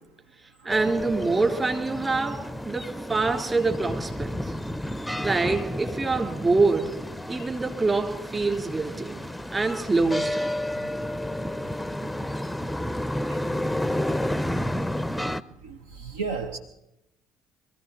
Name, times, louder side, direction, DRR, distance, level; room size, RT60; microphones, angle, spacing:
voice 1, 0.6-4.5 5.2-6.9 7.3-9.2 9.5-10.6, right 3 dB, 25° right, 4 dB, 3.4 m, -25 dB
sound 1, 0.7-15.4, left 1 dB, 5° left, 0.6 m, -31 dB
voice 2, 15.6-16.6, right 4 dB, 75° right, 7 dB, 0.8 m, -33 dB
23.5 x 15.0 x 4.2 m, 0.84 s
figure-of-eight pair, 50°, 0 cm